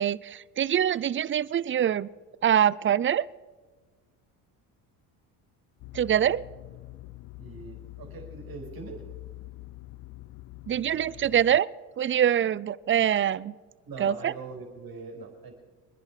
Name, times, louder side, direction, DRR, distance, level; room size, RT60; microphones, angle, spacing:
voice 1, 0.0-2.1 2.4-3.3 5.9-6.4 10.7-11.7 12.0-13.5 14.0-14.3, right 10 dB, 30° right, 21 dB, 0.5 m, -24 dB
sound 1, 5.8-11.6, left 18 dB, 60° left, 0.7 m, -45 dB
voice 2, 7.4-9.0 13.8-15.5, right 4 dB, 50° right, 1 dB, 5.6 m, -42 dB
26.0 x 10.5 x 4.9 m, 1.4 s
supercardioid pair, 80°, 45 cm